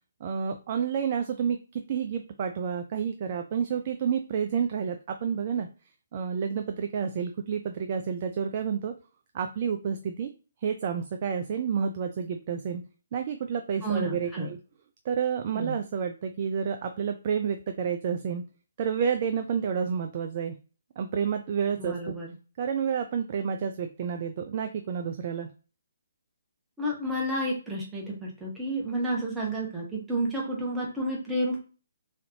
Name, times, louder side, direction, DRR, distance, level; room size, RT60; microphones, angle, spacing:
voice 1, 0.2-1.6 1.9-5.7 6.1-8.9 9.3-10.3 10.6-12.8 13.1-14.6 15.1-18.4 18.8-20.5 21.0-22.1 22.6-25.5, right 7 dB, 35° right, 5 dB, 0.3 m, -29 dB
voice 2, 13.8-14.5 15.5-15.8 21.8-22.3 26.8-31.6, right 1 dB, 10° right, -4 dB, 1.1 m, -30 dB
3.7 x 3.2 x 2.7 m, 0.36 s
figure-of-eight pair, 135°, 0 cm